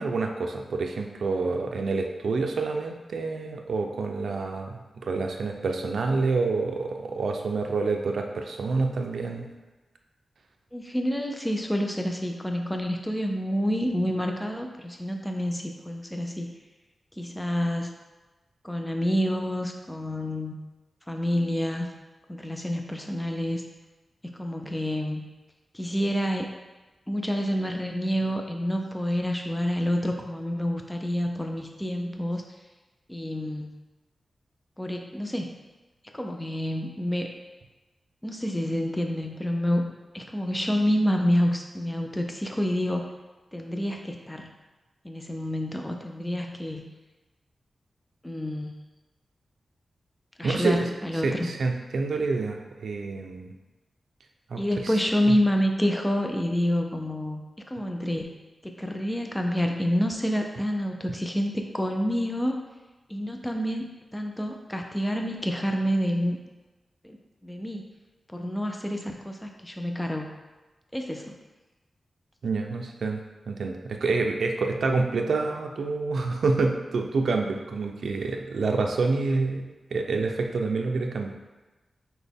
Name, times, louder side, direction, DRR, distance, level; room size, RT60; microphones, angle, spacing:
voice 1, 0.0-9.5 50.4-50.9 51.2-53.5 54.5-55.0 55.3-55.4 72.4-73.2 73.5-79.6 79.9-81.3, right 3 dB, 75° right, 3 dB, 0.4 m, -27 dB
voice 2, 10.7-16.5 17.2-17.9 18.6-20.5 21.1-21.9 22.3-23.6 24.2-25.3 25.7-26.5 27.1-32.4 33.1-33.7 34.8-35.5 36.1-37.3 38.2-43.1 43.5-44.5 45.0-46.9 48.2-48.7 50.4-51.5 54.6-58.4 58.6-62.6 63.1-66.4 67.0-67.2 67.4-67.8 68.3-70.4 70.9-71.3, equal, 10° left, 3 dB, 0.3 m, -28 dB
5.9 x 2.1 x 3.4 m, 1.1 s
wide cardioid pair, 135°, 0 cm